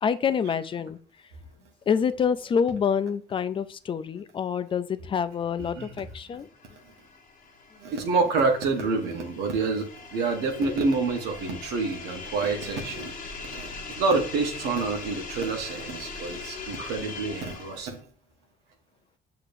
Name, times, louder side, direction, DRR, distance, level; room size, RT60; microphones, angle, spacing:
voice 1, 0.0-1.0 1.9-6.5 13.8-13.9, left 7 dB, 30° left, 14 dB, 0.3 m, -27 dB
sound 1, 6.1-18.0, left 4 dB, 50° left, 1.0 m, -41 dB
voice 2, 7.8-13.1 13.5-18.0, right 4 dB, 90° right, 2 dB, 0.9 m, -27 dB
6.6 x 2.9 x 2.5 m, 0.42 s
cardioid pair, 110°, 17 cm